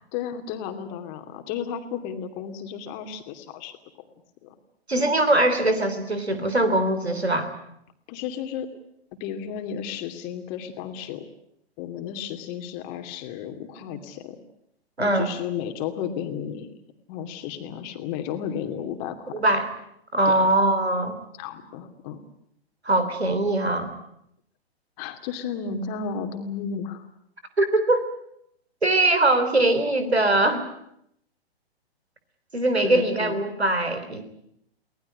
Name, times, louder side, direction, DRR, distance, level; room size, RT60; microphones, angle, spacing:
voice 1, 0.1-3.7 4.4-4.5 5.0-5.1 8.1-8.7 9.2-11.2 11.8-14.4 15.0-16.7 17.1-19.3 20.3-20.5 21.4-22.2 25.0-27.0 32.8-33.4, left 7 dB, 30° left, 7 dB, 2.7 m, -33 dB
voice 2, 4.9-7.5 15.0-15.3 19.3-19.7 20.1-21.2 22.8-23.9 27.6-28.1 28.8-30.6 32.5-34.2, right 2 dB, 85° right, 10 dB, 3.5 m, -22 dB
23.5 x 18.5 x 9.6 m, 0.76 s
figure-of-eight pair, 115°, 31 cm